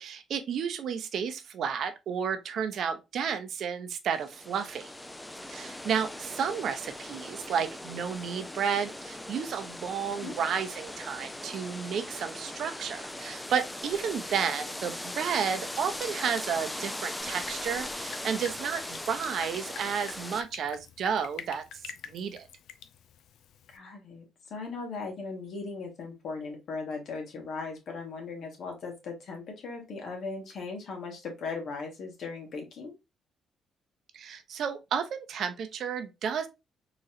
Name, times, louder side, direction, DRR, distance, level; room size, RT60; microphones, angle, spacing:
voice 1, 0.0-4.9 5.5-21.6 22.1-22.5 34.1-36.5, right 7 dB, 70° right, 0.6 m, -32 dB
sound 1, 4.1-20.4, left 1 dB, 10° left, 0.4 m, -39 dB
Drip, 17.2-23.8, left 8 dB, 80° left, 0.4 m, -47 dB
voice 2, 23.7-32.9, left 4 dB, 65° left, 1.6 m, -38 dB
3.9 x 3.0 x 2.5 m
cardioid pair, 90°, 0 cm